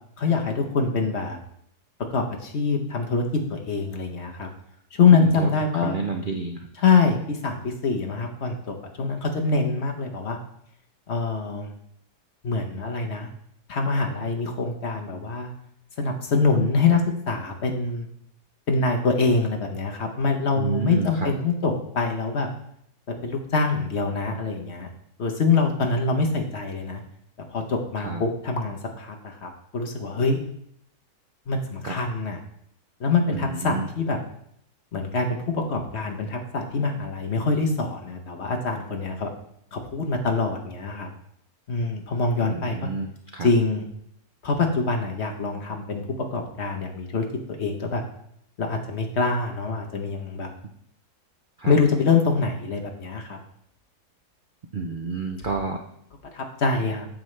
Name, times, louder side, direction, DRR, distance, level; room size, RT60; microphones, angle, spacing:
voice 1, 0.2-1.4 2.1-3.2 3.5-4.5 4.9-6.0 6.7-10.4 11.1-11.7 12.4-13.3 13.7-15.5 16.0-17.0 17.3-18.1 18.7-22.5 23.2-24.9 25.2-27.0 27.5-30.4 31.5-32.4 33.0-34.2 34.9-39.3 39.7-41.1 41.7-42.9 43.4-43.8 44.4-48.0 48.6-50.5 51.6-53.4 56.3-57.1, left 4 dB, 50° left, 3 dB, 1.0 m, -24 dB
voice 2, 5.1-5.5 5.8-6.6 20.5-21.3 28.0-28.2 31.8-31.9 33.6-33.9 42.5-43.1 43.3-43.5 51.6-51.7 54.7-55.8, right 4 dB, 75° right, 3 dB, 0.4 m, -29 dB
8.8 x 7.3 x 3.2 m, 0.72 s
omnidirectional pair, 1.8 m